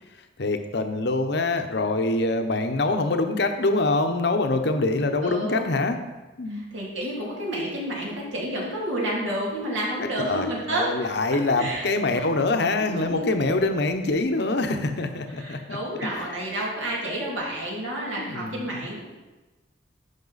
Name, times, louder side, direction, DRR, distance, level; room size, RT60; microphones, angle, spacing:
voice 1, 0.4-6.0 6.4-6.6 10.0-15.8 16.1-16.4 18.2-18.8, left 2 dB, 60° left, 6 dB, 0.8 m, -25 dB
voice 2, 5.2-5.7 6.5-10.9 11.6-12.2 12.8-13.2 15.4-19.0, right 1 dB, 85° right, -4 dB, 2.6 m, -30 dB
10.5 x 5.5 x 4.1 m, 1.2 s
head